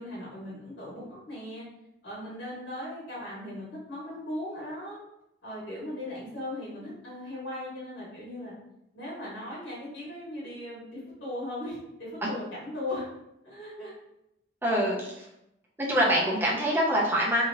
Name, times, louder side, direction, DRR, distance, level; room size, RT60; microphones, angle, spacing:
voice 1, 0.0-1.7 2.0-5.0 5.4-8.5 8.9-13.0 13.4-13.9, left 1 dB, 70° left, -7 dB, 1.4 m, -38 dB
voice 2, 14.6-15.3 15.8-17.4, equal, 10° right, -5 dB, 0.7 m, -25 dB
2.8 x 2.7 x 2.6 m, 0.84 s
head